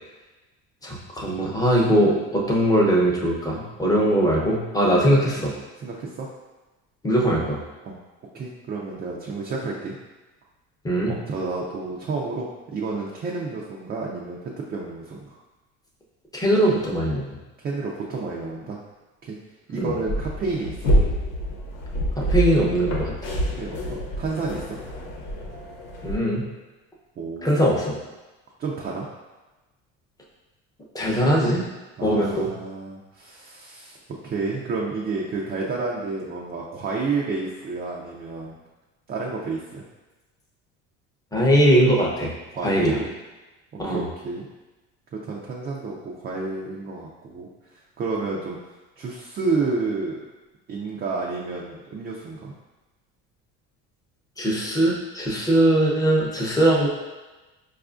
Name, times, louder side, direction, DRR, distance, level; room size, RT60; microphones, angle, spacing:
voice 1, 0.8-5.5 7.0-7.6 10.8-11.1 16.3-17.3 19.8-19.9 22.3-23.1 26.0-26.4 27.4-28.0 30.9-31.7 32.0-32.5 41.3-42.3 42.6-43.0 43.8-44.0 54.4-56.9, right 1 dB, 10° left, -3 dB, 0.7 m, -20 dB
voice 2, 4.9-5.4 5.8-6.3 7.8-8.0 8.3-10.0 11.1-15.4 17.6-18.8 19.2-19.4 19.7-20.9 23.6-24.8 27.2-28.0 28.6-29.1 32.0-38.6 39.1-39.9 42.5-43.2 43.7-44.5 45.1-48.6 49.0-50.2 50.7-52.5, right 3 dB, 30° right, -3 dB, 0.4 m, -30 dB
sound 1, 20.1-26.2, equal, 75° left, 0.9 m, -26 dB
4.7 x 2.4 x 2.4 m, 1.2 s
supercardioid pair, 105°, 31 cm